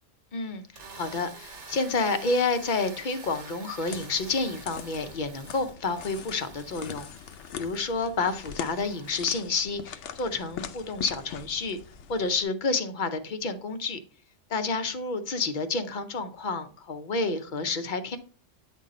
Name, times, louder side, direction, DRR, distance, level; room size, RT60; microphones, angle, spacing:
voice 1, 0.3-7.0 7.6-11.8 12.1-14.0 14.5-18.2, left 3 dB, 50° left, 0.8 m, -29 dB
sound 1, 0.6-9.2, right 4 dB, 80° right, 1.5 m, -48 dB
sound 2, 3.8-12.4, left 8 dB, 85° left, 1.0 m, -42 dB
9.1 x 3.8 x 4.1 m
omnidirectional pair, 1.2 m